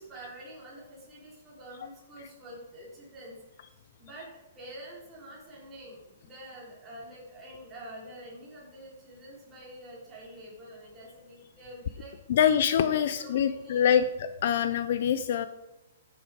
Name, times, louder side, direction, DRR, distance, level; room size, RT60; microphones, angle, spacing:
voice 1, 0.0-3.3 3.7-4.3 4.5-12.1 12.9-14.0, right 1 dB, 10° right, -5 dB, 3.4 m, -47 dB
voice 2, 12.3-14.0 14.4-15.5, left 9 dB, 40° left, 11 dB, 0.5 m, -24 dB
10.0 x 8.8 x 5.0 m, 1.0 s
hypercardioid pair, 180°, 0 cm